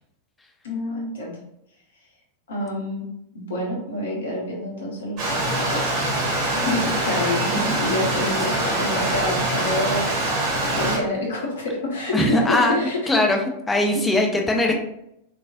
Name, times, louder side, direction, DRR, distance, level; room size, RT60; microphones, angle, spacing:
voice 1, 0.6-1.4 2.5-3.1 3.3-6.0 6.5-13.0, left 1 dB, 65° left, -2 dB, 1.0 m, -27 dB
Stream, 5.2-11.0, right 1 dB, 35° right, 1.3 m, -24 dB
voice 2, 12.1-12.8 13.1-13.4 13.7-14.7, left 1 dB, 10° left, 1 dB, 0.5 m, -20 dB
3.0 x 2.6 x 2.6 m, 0.79 s
figure-of-eight pair, 90°, 0 cm